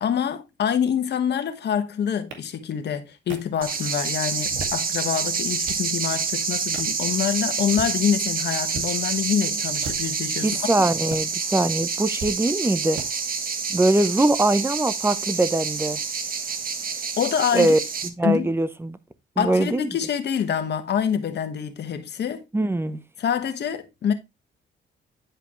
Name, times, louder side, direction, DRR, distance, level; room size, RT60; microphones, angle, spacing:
voice 1, 0.0-10.5 17.2-17.8 18.2-18.5 19.4-22.4 23.2-24.1, left 8 dB, 60° left, 1.5 m, -26 dB
sound 1, 2.3-2.4 3.3-3.4 4.4-4.9 5.4-5.9 6.7-7.0 7.6-7.9 8.7-8.9 9.7-10.2 11.1-11.2 12.2-12.3 13.0-13.1, right 3 dB, 75° right, 2.2 m, -36 dB
sound 2, 3.6-18.1, right 5 dB, 45° right, 1.3 m, -28 dB
voice 2, 10.4-13.0 13.7-16.0 17.5-19.0 19.4-19.9 22.5-23.0, right 2 dB, 10° right, 0.8 m, -22 dB
10.5 x 5.0 x 3.1 m
cardioid pair, 90°, 20 cm